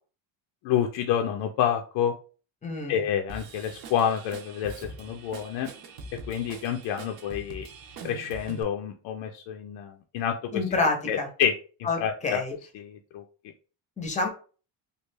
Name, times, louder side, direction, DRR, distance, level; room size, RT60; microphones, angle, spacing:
voice 1, 0.6-2.1 2.9-5.7 6.3-7.7 8.0-10.6 11.1-11.5 12.0-12.4 12.7-13.2, left 9 dB, 70° left, 3 dB, 0.5 m, -28 dB
voice 2, 2.6-3.0 10.5-11.3 11.8-12.0 12.2-12.5 14.0-14.3, left 3 dB, 15° left, 3 dB, 0.7 m, -27 dB
Drum kit / Drum, 3.3-8.6, right 3 dB, 50° right, 0.7 m, -43 dB
3.2 x 2.4 x 3.2 m, 0.37 s
cardioid pair, 165°, 45 cm